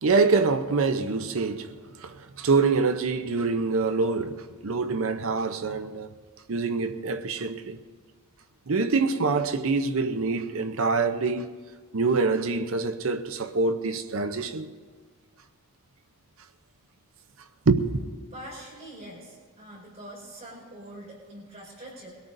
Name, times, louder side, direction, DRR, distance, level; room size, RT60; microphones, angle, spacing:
voice 1, 0.0-6.1 6.5-7.8 8.7-11.5 11.9-14.7 17.7-18.0, right 4 dB, 65° right, 0.7 m, -25 dB
voice 2, 18.3-22.2, right 1 dB, 30° right, 5.1 m, -44 dB
23.0 x 17.0 x 2.6 m
head